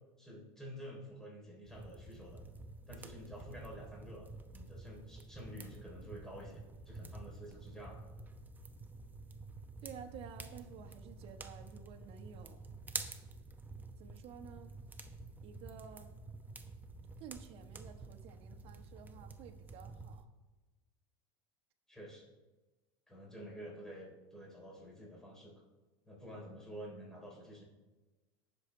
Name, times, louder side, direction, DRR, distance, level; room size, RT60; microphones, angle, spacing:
voice 1, 0.2-2.4 2.9-4.2 4.5-8.0 21.9-22.3 23.1-25.6 26.0-27.6, equal, 5° left, -3 dB, 3.5 m, -50 dB
sound 1, 1.7-20.2, right 3 dB, 15° right, 0.8 m, -49 dB
voice 2, 9.8-12.6 14.0-14.7 15.4-16.1 17.2-20.3, right 8 dB, 45° right, 4 dB, 1.2 m, -52 dB
18.5 x 6.5 x 3.3 m, 1.2 s
hypercardioid pair, 100°, 13 cm